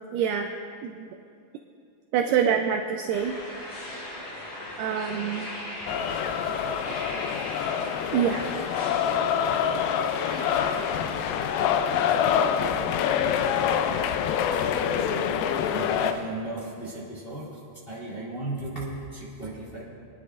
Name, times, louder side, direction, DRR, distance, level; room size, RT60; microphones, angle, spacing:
voice 1, 0.1-0.5 0.8-1.1 2.1-3.4 4.8-5.5 8.1-8.5, right 8 dB, 85° right, 5 dB, 1.9 m, -25 dB
sound 1, 3.1-12.6, left 1 dB, 65° left, 4.2 m, -39 dB
sound 2, 5.9-16.1, left 8 dB, 85° left, 2.4 m, -26 dB
voice 2, 14.5-17.6 17.9-19.8, right 2 dB, 20° left, -7 dB, 1.9 m, -36 dB
24.5 x 10.5 x 2.5 m, 2.4 s
omnidirectional pair, 4.2 m